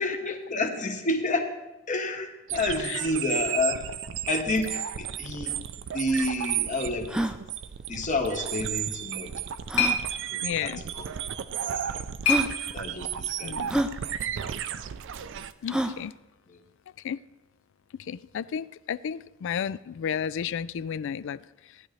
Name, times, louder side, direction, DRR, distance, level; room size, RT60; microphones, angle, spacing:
voice 1, 0.0-1.5 1.9-3.8 4.3-5.6 5.9-7.2 7.9-9.3 10.3-10.7 11.7-12.0 12.7-13.6, left 2 dB, 35° left, 4 dB, 1.1 m, -29 dB
sound 1, 2.5-15.5, right 10 dB, 60° right, 0.4 m, -33 dB
sound 2, 5.5-5.6 5.8-5.9 6.4-6.5 7.0-7.4 8.7-8.8 9.7-10.0 11.0-11.1 11.8-11.9 12.2-12.5 13.7-13.9 15.7-16.0, right 1 dB, 5° right, 0.4 m, -28 dB
sound 3, 9.0-13.2, left 4 dB, 85° left, 1.9 m, -31 dB
voice 2, 10.4-10.8 13.4-13.8 15.6-16.1 17.0-17.2 18.0-21.8, left 8 dB, 60° left, 19 dB, 0.3 m, -33 dB
16.0 x 10.5 x 3.2 m, 1.0 s
head